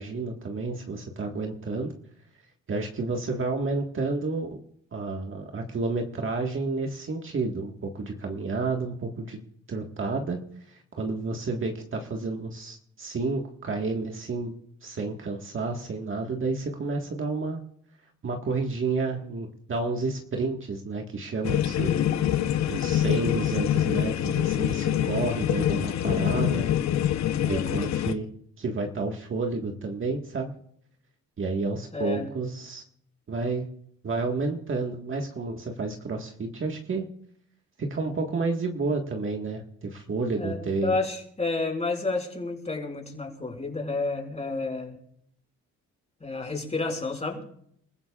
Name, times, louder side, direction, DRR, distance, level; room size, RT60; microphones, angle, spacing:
voice 1, 0.0-1.9 2.7-4.6 4.9-9.4 9.7-10.4 10.7-14.5 14.8-17.6 18.2-21.9 22.7-26.7 27.4-28.3 28.6-30.6 31.4-32.8 33.3-33.7 34.0-37.1 37.8-40.9, right 3 dB, 40° right, 2 dB, 1.7 m, -30 dB
sound 1, 21.4-28.1, left 11 dB, 65° left, 0.9 m, -25 dB
voice 2, 21.7-22.7 27.4-28.0 31.9-32.3 40.4-45.0 46.2-47.4, left 3 dB, 20° left, 0 dB, 5.5 m, -31 dB
30.0 x 15.0 x 2.5 m, 0.69 s
cardioid pair, 90°, 30 cm